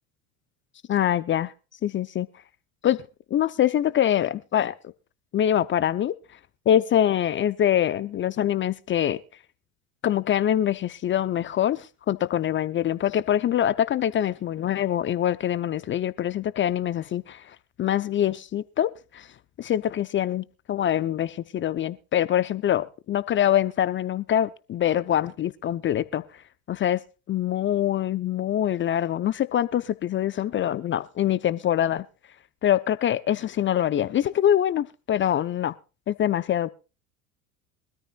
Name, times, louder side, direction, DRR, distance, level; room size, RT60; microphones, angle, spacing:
voice 1, 0.9-1.5 1.8-2.3 2.8-3.0 3.3-4.7 5.3-6.1 6.7-9.2 10.0-17.4 17.8-19.3 19.6-26.2 26.7-27.0 27.3-32.0 32.6-35.7 36.1-36.7, left 11 dB, 30° left, 0.6 m, -24 dB
23.5 x 13.5 x 2.4 m
hypercardioid pair, 80°, 41 cm